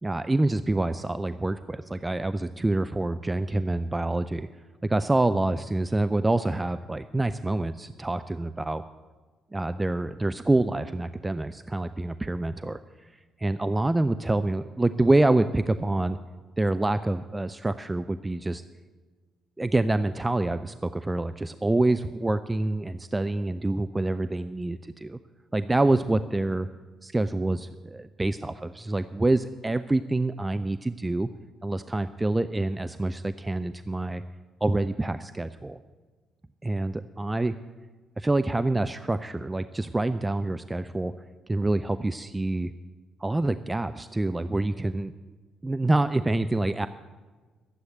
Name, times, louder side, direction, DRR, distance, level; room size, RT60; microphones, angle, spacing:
voice 1, 0.0-4.5 4.8-8.8 9.5-12.8 13.4-16.2 16.6-18.6 19.6-25.2 25.5-26.7 27.0-31.3 31.6-34.2 34.6-35.8 36.6-37.5 38.2-41.1 41.5-42.7 43.2-45.1 45.6-46.9, right 2 dB, 15° right, 12 dB, 0.4 m, -26 dB
12.5 x 7.9 x 8.2 m, 1.4 s
figure-of-eight pair, 45°, 0 cm